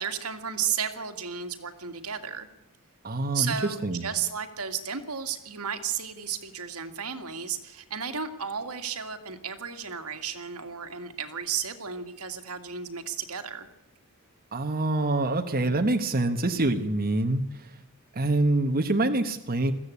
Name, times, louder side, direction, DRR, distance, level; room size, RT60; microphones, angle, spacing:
voice 1, 0.0-2.5 3.3-13.7, right 7 dB, 80° right, 7 dB, 2.1 m, -33 dB
voice 2, 3.0-4.1 14.5-17.7 18.1-19.7, right 2 dB, 40° right, 5 dB, 1.2 m, -26 dB
22.0 x 15.0 x 8.5 m, 0.89 s
head